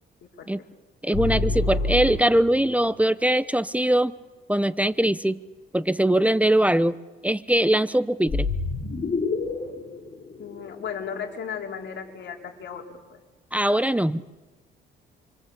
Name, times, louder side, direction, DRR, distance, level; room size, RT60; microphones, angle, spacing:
voice 1, 0.2-0.7 10.4-12.8 13.1-13.2, left 7 dB, 65° left, 1 dB, 4.9 m, -36 dB
voice 2, 1.0-4.1 4.5-5.4 5.7-7.0 7.2-8.5 13.5-14.2, right 1 dB, 5° right, 15 dB, 0.8 m, -21 dB
sound 1, 1.1-2.7 8.3-11.4, left 3 dB, 45° left, 4.8 m, -28 dB
28.0 x 24.5 x 8.3 m, 1.2 s
cardioid pair, 90°, 20 cm